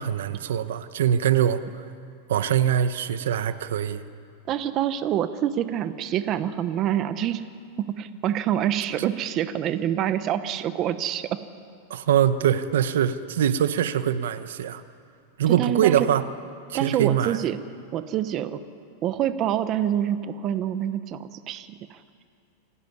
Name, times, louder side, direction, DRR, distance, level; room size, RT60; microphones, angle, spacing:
voice 1, 0.0-1.6 2.3-4.0 11.9-14.8 15.4-16.2 16.7-17.4, right 10 dB, 85° right, 12 dB, 1.0 m, -23 dB
voice 2, 4.5-7.5 7.8-11.4 15.5-16.1 16.7-17.6 17.9-18.6 19.0-22.0, right 11 dB, 30° right, 12 dB, 0.8 m, -26 dB
27.0 x 12.5 x 9.7 m, 2.4 s
supercardioid pair, 160°, 0 cm